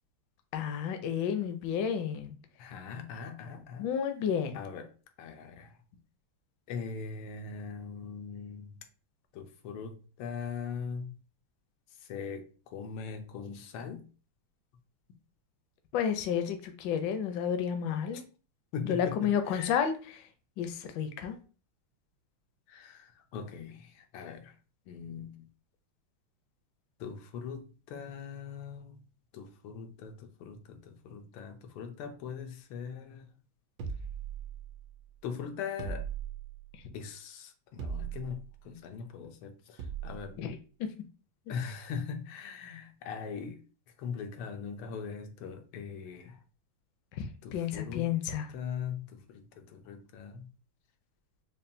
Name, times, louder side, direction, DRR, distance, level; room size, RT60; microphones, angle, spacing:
voice 1, 0.5-2.3 3.8-4.6 15.9-18.2 18.8-20.2 20.6-21.4 40.4-40.9 41.5-41.6 47.2-47.3 47.5-48.5, left 8 dB, 70° left, 1.1 m, -31 dB
voice 2, 2.6-3.9 4.5-4.9 5.2-5.7 6.7-8.8 9.3-11.1 12.1-12.4 12.7-14.0 18.7-19.8 22.7-24.5 24.9-25.5 27.0-29.0 29.3-33.3 35.2-36.0 36.9-40.3 41.5-43.6 44.0-46.4 47.4-48.1 48.5-50.5, left 6 dB, 85° left, 1.6 m, -41 dB
sound 1, 33.8-34.9 35.8-36.7 37.8-38.5 39.8-40.3, right 7 dB, 70° right, 1.3 m, -38 dB
5.4 x 2.3 x 2.6 m
omnidirectional pair, 2.3 m